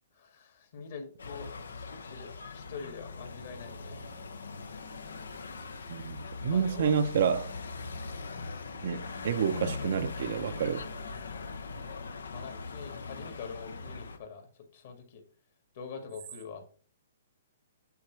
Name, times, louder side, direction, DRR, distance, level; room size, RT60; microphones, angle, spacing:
voice 1, 0.1-1.5 1.8-4.0 6.5-6.9 12.3-15.2 15.7-16.6, left 5 dB, 55° left, 2.0 m, -44 dB
sound 1, 1.2-14.2, left 4 dB, 80° left, 0.9 m, -41 dB
voice 2, 5.9-7.5 8.8-10.8, right 7 dB, 60° right, 0.7 m, -29 dB
8.3 x 3.6 x 4.6 m
hypercardioid pair, 130°, 0 cm